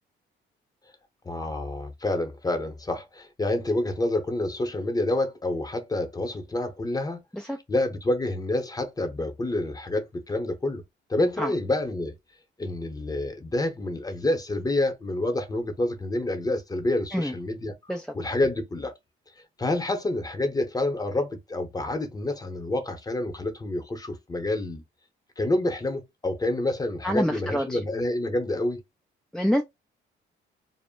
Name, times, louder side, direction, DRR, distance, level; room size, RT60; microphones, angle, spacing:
voice 1, 1.2-7.2 7.7-10.8 11.1-12.2 12.6-17.7 18.1-19.0 19.6-24.8 25.4-28.8, left 1 dB, 20° left, 0.8 m, -28 dB
voice 2, 27.0-27.8 29.3-29.6, equal, 5° left, 0.3 m, -26 dB
2.1 x 2.0 x 3.6 m
cardioid pair, 90°, 20 cm